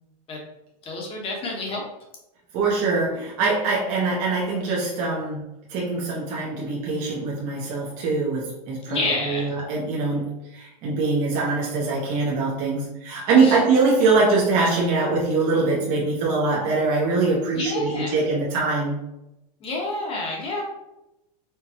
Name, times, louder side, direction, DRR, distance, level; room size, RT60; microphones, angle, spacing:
voice 1, 0.8-1.8 8.9-9.6 13.4-13.6 17.5-18.2 19.6-20.6, left 2 dB, 25° left, -1 dB, 1.0 m, -29 dB
voice 2, 2.5-5.4 5.7-19.0, right 3 dB, 40° right, -5 dB, 0.9 m, -23 dB
4.6 x 2.2 x 2.8 m, 0.92 s
supercardioid pair, 135°, 20 cm